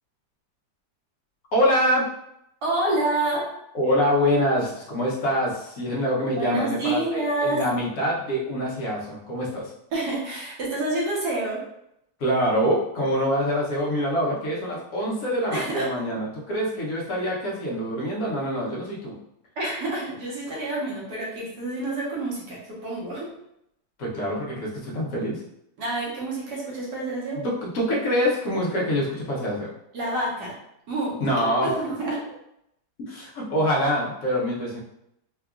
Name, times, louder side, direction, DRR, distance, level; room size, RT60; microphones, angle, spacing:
voice 1, 1.5-2.1 3.7-9.7 12.2-19.2 24.0-25.4 27.4-29.7 31.2-31.7 33.0-34.8, equal, 60° left, -4 dB, 1.2 m, -25 dB
voice 2, 2.6-3.5 6.4-7.6 9.9-11.6 15.5-15.8 19.6-23.3 25.8-27.4 29.9-30.5 30.9-32.2, right 2 dB, 70° right, -5 dB, 1.5 m, -28 dB
3.7 x 2.3 x 2.3 m, 0.79 s
omnidirectional pair, 1.9 m